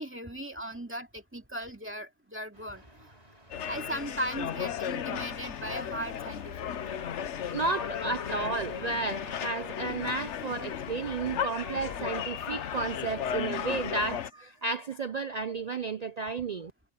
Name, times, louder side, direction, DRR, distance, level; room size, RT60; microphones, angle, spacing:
voice 1, 0.0-2.8 3.7-6.7, right 1 dB, 10° right, 2.4 m, -37 dB
sound 1, 2.5-12.7, right 1 dB, 30° right, 5.5 m, -56 dB
sound 2, 3.5-14.3, left 8 dB, 65° left, 1.1 m, -35 dB
voice 2, 7.5-16.7, right 3 dB, 55° right, 0.4 m, -32 dB
omnidirectional pair, 1.3 m